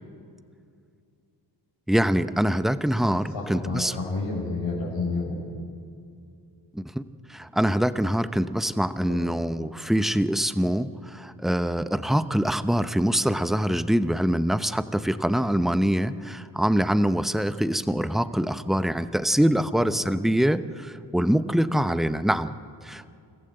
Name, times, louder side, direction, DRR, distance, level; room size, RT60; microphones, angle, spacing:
voice 1, 1.9-3.9 6.7-7.0 7.3-22.5 22.8-23.1, equal, ahead, 11 dB, 0.8 m, -24 dB
voice 2, 3.3-5.4 9.1-9.3 19.6-20.0, left 3 dB, 75° left, -6 dB, 5.3 m, -30 dB
29.5 x 14.5 x 8.0 m, 2.4 s
cardioid pair, 60°, 45 cm